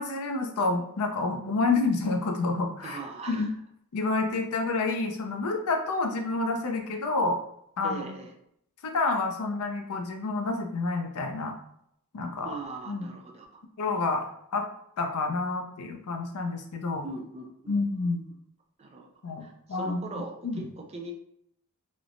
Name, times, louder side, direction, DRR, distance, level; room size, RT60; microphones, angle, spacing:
voice 1, 0.0-3.0 3.3-3.5 3.9-7.4 7.8-8.0 8.8-11.6 12.1-12.5 12.9-13.0 13.8-14.3 14.5-14.7 15.0-17.1 17.7-18.2 19.2-20.0 20.4-20.6, left 3 dB, 80° left, 4 dB, 0.5 m, -28 dB
voice 2, 2.8-3.5 7.8-8.3 12.4-13.5 17.0-17.8 18.8-19.1 19.4-21.1, right 3 dB, 30° right, 2 dB, 0.4 m, -40 dB
3.1 x 2.0 x 2.5 m, 0.73 s
head